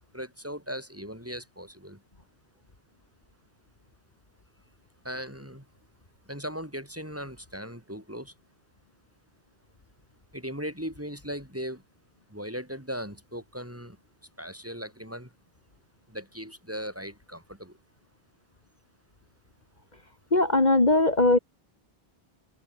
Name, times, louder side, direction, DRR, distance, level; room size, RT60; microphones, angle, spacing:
voice 1, 0.1-2.0 5.0-5.6 6.3-8.3 10.3-11.8 12.3-14.0 14.4-15.3 16.1-17.7, equal, 15° right, 6.6 m, -38 dB
voice 2, 20.3-21.4, left 2 dB, 45° left, 2.7 m, -20 dB
open air
omnidirectional pair, 1.0 m